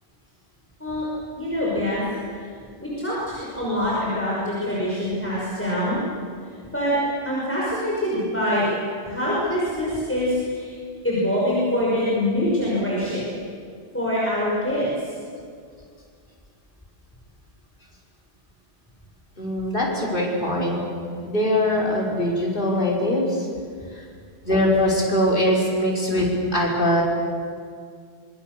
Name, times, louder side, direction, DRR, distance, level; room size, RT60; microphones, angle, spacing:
voice 1, 1.4-2.5 2.8-6.0 6.7-7.0 7.2-8.7 9.1-10.7 11.0-13.4 13.9-15.1, left 1 dB, 10° left, -7 dB, 6.0 m, -24 dB
voice 2, 19.4-20.8 21.2-23.5 23.9-24.0 24.4-27.0, left 1 dB, 55° left, -2 dB, 5.5 m, -22 dB
26.0 x 24.5 x 6.9 m, 2.2 s
omnidirectional pair, 1.1 m